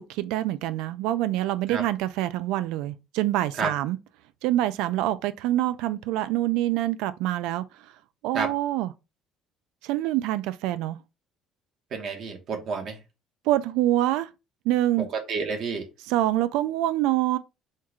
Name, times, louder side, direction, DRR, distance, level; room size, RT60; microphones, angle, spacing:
voice 1, 0.0-4.0 4.4-7.9 8.2-8.9 9.8-11.0 13.5-14.3 14.7-15.1 16.1-17.4, right 14 dB, 85° right, 0.3 m, -25 dB
voice 2, 11.9-13.0 15.0-15.9, right 4 dB, 45° right, 1.2 m, -30 dB
4.5 x 2.4 x 4.6 m
cardioid pair, 165°, 0 cm